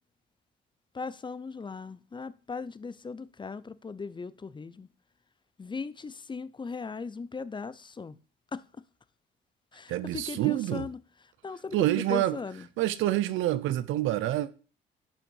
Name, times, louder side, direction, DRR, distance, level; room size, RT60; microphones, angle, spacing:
voice 1, 0.9-4.9 5.6-8.2 8.5-8.6 9.7-11.0 11.4-12.7, left 4 dB, 25° left, 0.6 m, -38 dB
voice 2, 9.9-10.8 11.7-12.4 12.8-14.5, right 14 dB, 85° right, 0.6 m, -27 dB
11.5 x 5.7 x 5.5 m
cardioid pair, 90°, 20 cm